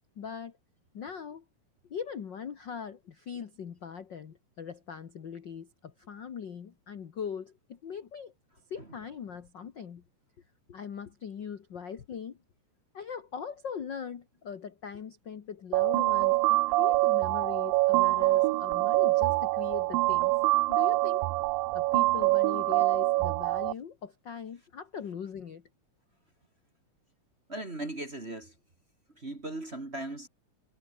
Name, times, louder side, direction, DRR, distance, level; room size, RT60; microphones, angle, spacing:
voice 1, 0.2-0.6 0.9-1.4 1.9-8.3 8.7-10.0 10.7-12.4 12.9-20.3 20.7-21.3 21.7-25.6, left 7 dB, 50° left, 1.3 m, -41 dB
sound 1, 15.7-23.7, right 21 dB, 80° right, 2.3 m, -25 dB
voice 2, 27.5-28.5 29.2-30.3, right 2 dB, 20° right, 2.1 m, -38 dB
omnidirectional pair, 4.0 m